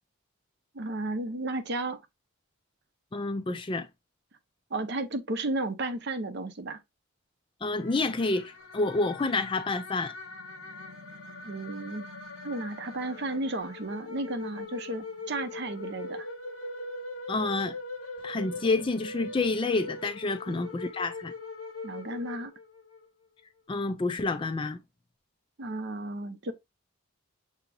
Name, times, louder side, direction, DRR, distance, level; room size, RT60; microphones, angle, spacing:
voice 1, 0.7-2.0 4.7-6.8 11.4-12.1 12.4-16.3 20.5-20.6 21.8-22.5 25.6-26.5, right 2 dB, 50° right, 0.6 m, -33 dB
voice 2, 3.1-3.9 7.6-10.1 17.3-17.7 18.2-21.3 23.7-24.8, left 3 dB, 25° left, 0.3 m, -29 dB
sound 1, 7.8-23.1, left 2 dB, 80° left, 0.9 m, -42 dB
sound 2, 10.3-15.9, left 1 dB, 90° right, 1.1 m, -55 dB
6.8 x 2.9 x 2.6 m
head